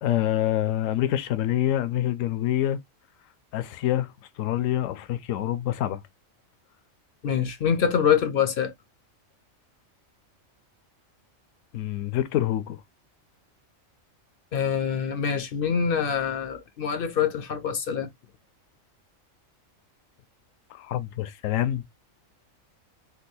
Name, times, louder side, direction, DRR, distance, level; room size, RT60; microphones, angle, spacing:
voice 1, 0.0-2.8 3.5-4.1 4.4-6.0 11.7-12.8 20.7-21.8, left 12 dB, 75° left, 0.9 m, -26 dB
voice 2, 7.2-8.7 14.5-18.1, left 7 dB, 60° left, 0.6 m, -25 dB
3.8 x 2.2 x 2.6 m
omnidirectional pair, 1.4 m